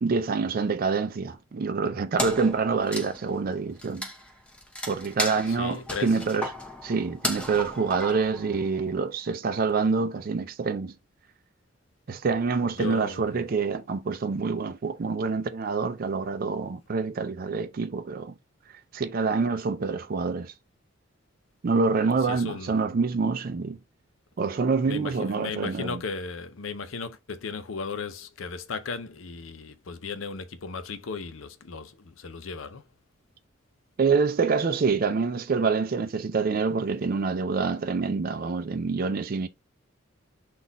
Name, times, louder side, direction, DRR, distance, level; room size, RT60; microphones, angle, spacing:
voice 1, 0.0-4.1 4.9-6.5 6.8-10.9 12.1-18.3 18.9-20.5 21.6-23.8 24.4-26.0 34.0-39.5, right 4 dB, 45° right, 0.4 m, -26 dB
Wood, 2.2-8.9, left 1 dB, 5° left, 0.8 m, -35 dB
voice 2, 5.5-6.2 12.8-13.5 22.2-22.8 24.8-32.9, left 5 dB, 85° left, 0.6 m, -36 dB
4.1 x 2.4 x 4.0 m
head